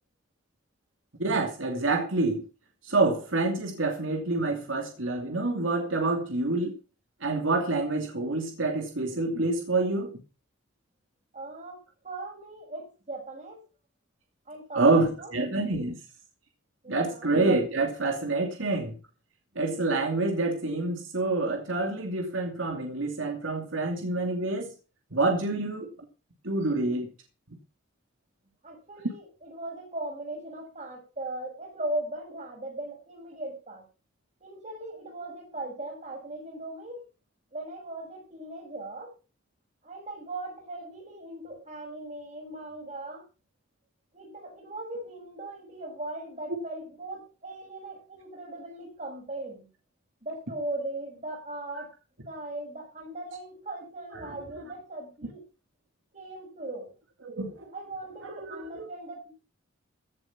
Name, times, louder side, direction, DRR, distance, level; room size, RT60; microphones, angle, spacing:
voice 1, 1.2-2.4 2.8-6.7 7.2-10.2 14.7-16.0 16.9-19.0 19.5-24.7 25.1-25.9 26.4-27.1 54.1-54.4 57.2-57.7 58.2-58.9, right 2 dB, 75° right, 2.7 m, -27 dB
voice 2, 11.3-13.6 14.5-15.3 16.8-17.3 28.6-33.8 34.4-37.0 37.5-39.1 39.8-43.2 44.1-49.7 50.2-51.9 52.3-55.4 56.1-56.9 57.7-59.4, right 2 dB, 35° right, 6.1 m, -38 dB
16.0 x 7.8 x 5.9 m
head